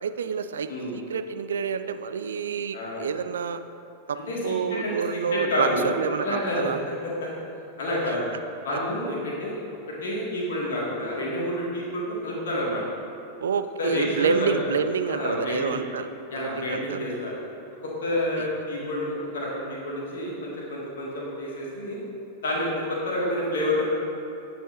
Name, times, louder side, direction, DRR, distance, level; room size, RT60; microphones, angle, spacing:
voice 1, 0.0-3.6 4.1-6.8 8.0-8.2 13.4-16.1 16.4-17.0 18.1-18.5, right 6 dB, 65° right, 11 dB, 0.3 m, -28 dB
voice 2, 2.7-3.0 4.3-5.9 6.2-7.3 7.8-8.3 8.6-9.6 10.0-12.8 13.8-14.8 15.0-15.8 16.3-17.3 17.8-22.0 22.4-23.9, left 1 dB, 60° left, -5 dB, 1.6 m, -29 dB
8.6 x 6.3 x 3.1 m, 2.8 s
figure-of-eight pair, 90°, 0 cm